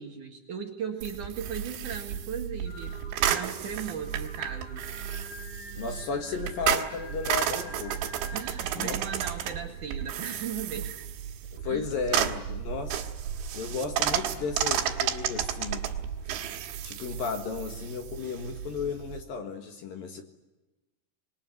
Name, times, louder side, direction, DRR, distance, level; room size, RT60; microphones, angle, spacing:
voice 1, 0.0-3.0 3.3-4.9 8.3-11.0 11.7-11.9, right 7 dB, 55° right, 3 dB, 2.7 m, -37 dB
sound 1, 1.0-19.2, right 9 dB, 70° right, 3.8 m, -32 dB
Singing, 2.7-8.4, left 2 dB, 80° left, 10.0 m, -46 dB
voice 2, 5.8-8.1 8.8-9.0 11.5-13.0 13.5-15.9 16.8-20.2, left 5 dB, 60° left, 5 dB, 3.0 m, -34 dB
26.5 x 22.0 x 9.3 m, 1.1 s
omnidirectional pair, 5.5 m